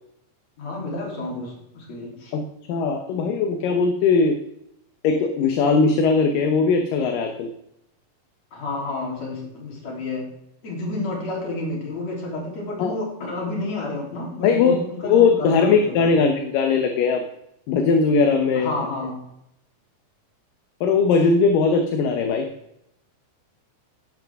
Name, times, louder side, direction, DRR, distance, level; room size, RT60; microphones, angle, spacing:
voice 1, 0.6-2.3 8.5-10.3 10.6-16.1 18.5-19.2, left 2 dB, 50° left, -1 dB, 4.5 m, -30 dB
voice 2, 2.3-4.4 5.0-7.5 12.8-12.9 14.4-17.2 17.7-18.7 20.8-22.5, left 5 dB, 75° left, 5 dB, 2.6 m, -19 dB
16.0 x 11.0 x 3.6 m, 0.80 s
omnidirectional pair, 4.1 m